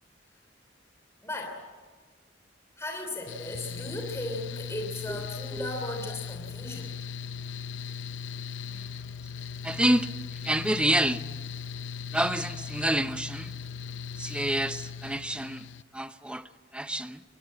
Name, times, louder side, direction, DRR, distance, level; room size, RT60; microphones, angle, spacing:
voice 1, 1.2-1.6 2.8-7.0, left 1 dB, 15° left, 2 dB, 3.1 m, -36 dB
Mechanical fan, 3.3-15.8, left 6 dB, 70° left, 0.7 m, -38 dB
voice 2, 9.6-11.2 12.1-13.6 14.2-17.2, right 1 dB, 5° right, 11 dB, 0.7 m, -28 dB
24.0 x 20.5 x 8.8 m, 1.5 s
head